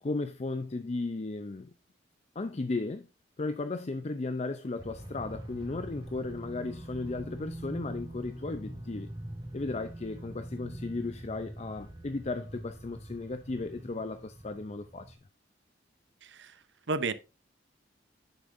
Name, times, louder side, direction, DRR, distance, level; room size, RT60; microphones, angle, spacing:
voice 1, 0.0-1.7 2.4-3.1 3.4-9.1 9.5-15.2, left 3 dB, 35° left, 0.5 m, -35 dB
sound 1, 4.8-15.2, right 1 dB, 25° right, 2.4 m, -43 dB
voice 2, 16.2-16.6 16.9-17.1, right 3 dB, 70° right, 0.7 m, -32 dB
9.5 x 7.5 x 2.6 m
head